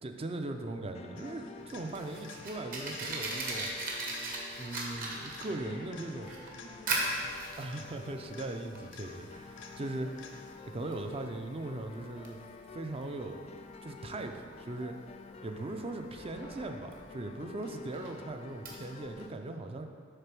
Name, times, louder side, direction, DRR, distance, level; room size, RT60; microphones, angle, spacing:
voice 1, 0.0-3.7 4.6-6.3 7.6-12.4 12.7-13.4 13.8-15.0 15.4-19.9, right 2 dB, 30° right, 6 dB, 0.5 m, -39 dB
sound 1, 0.9-19.3, left 4 dB, 30° left, 0.3 m, -50 dB
sound 2, 1.2-10.8 18.7-18.8, left 5 dB, 70° left, 0.7 m, -53 dB
Fire, 1.6-19.3, right 2 dB, 50° right, 1.2 m, -40 dB
voice 2, 5.3-7.4, right 1 dB, 85° right, -4 dB, 1.6 m, -55 dB
6.6 x 4.1 x 6.0 m, 2.1 s
head